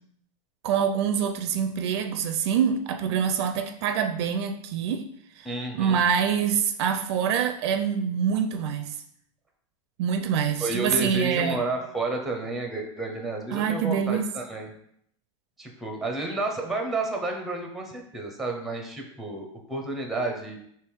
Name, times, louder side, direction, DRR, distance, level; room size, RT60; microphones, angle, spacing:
voice 1, 0.6-5.1 5.4-5.5 5.7-9.0 10.0-11.6 13.5-14.3, right 7 dB, 55° right, 0.4 m, -25 dB
voice 2, 5.4-6.0 10.6-14.7 15.6-20.6, right 2 dB, ahead, 0.6 m, -31 dB
3.4 x 3.0 x 4.6 m
supercardioid pair, 145°, 17 cm